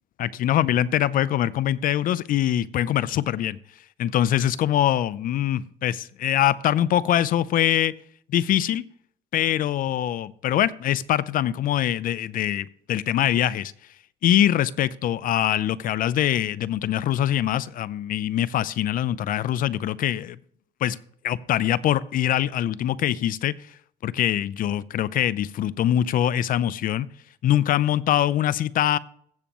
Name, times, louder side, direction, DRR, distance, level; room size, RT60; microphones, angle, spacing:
voice 1, 0.2-3.6 4.0-7.9 8.3-8.8 9.3-13.7 14.2-20.4 20.8-21.0 21.2-23.5 24.0-27.1 27.4-29.0, left 11 dB, 55° left, 0.5 m, -23 dB
15.5 x 7.0 x 3.0 m
cardioid pair, 110°, 17 cm